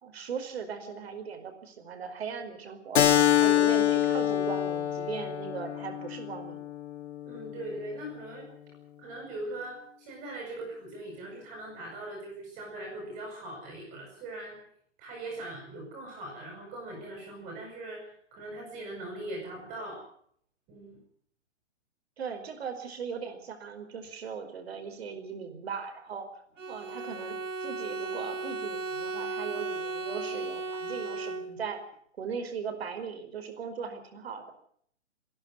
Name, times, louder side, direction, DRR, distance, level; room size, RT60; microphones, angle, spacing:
voice 1, 0.0-3.0 3.4-6.6 22.2-26.3 26.7-31.8 32.2-34.5, right 6 dB, 55° right, 7 dB, 5.0 m, -38 dB
Keyboard (musical), 2.9-8.1, left 11 dB, 60° left, 1.6 m, -26 dB
voice 2, 7.2-8.5 9.0-14.6 15.0-20.0 20.7-21.0, right 1 dB, 20° right, 0 dB, 7.9 m, -40 dB
Bowed string instrument, 26.6-31.8, right 3 dB, 85° right, 1.8 m, -36 dB
27.0 x 11.5 x 9.6 m, 0.64 s
hypercardioid pair, 160°, 37 cm